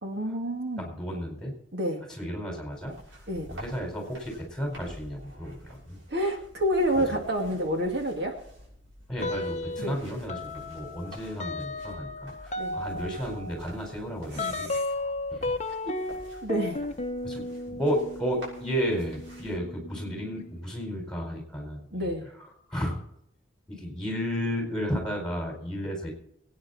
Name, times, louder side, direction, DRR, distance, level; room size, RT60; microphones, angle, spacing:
voice 1, 0.0-0.9 1.7-2.1 3.3-3.5 6.1-8.4 9.8-10.0 12.6-12.8 14.3-14.8 15.9-16.0 16.4-16.8 21.9-22.3, equal, 55° right, 2 dB, 2.1 m, -29 dB
voice 2, 0.8-1.5 2.2-2.9 3.5-6.0 6.9-7.2 9.1-14.7 15.0-15.5 17.2-22.1 22.4-22.5 22.7-23.0 23.8-26.1, equal, 5° left, 1 dB, 4.8 m, -33 dB
sound 1, 2.7-19.6, equal, 80° right, 6.5 m, -49 dB
sound 2, 9.2-10.0 10.3-20.6, left 2 dB, 35° left, 0.8 m, -35 dB
22.5 x 9.5 x 4.2 m, 0.75 s
head